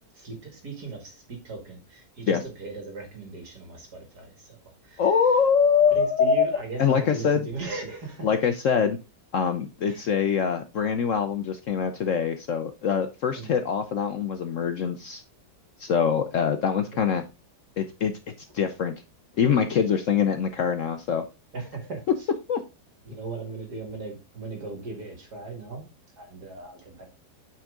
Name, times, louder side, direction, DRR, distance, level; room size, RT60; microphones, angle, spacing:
voice 1, 0.1-5.1 5.9-8.3 9.9-10.1 13.3-13.5 16.9-17.1 21.5-22.3 23.0-25.9 26.2-27.1, right 4 dB, 65° right, 3 dB, 2.6 m, -38 dB
voice 2, 5.0-7.5 8.2-9.0 9.3-15.2 15.8-17.2 17.8-18.1 18.5-18.9 19.4-21.2 22.5-22.6, left 6 dB, 60° left, 8 dB, 0.9 m, -24 dB
8.8 x 4.6 x 3.7 m, 0.28 s
omnidirectional pair, 1.9 m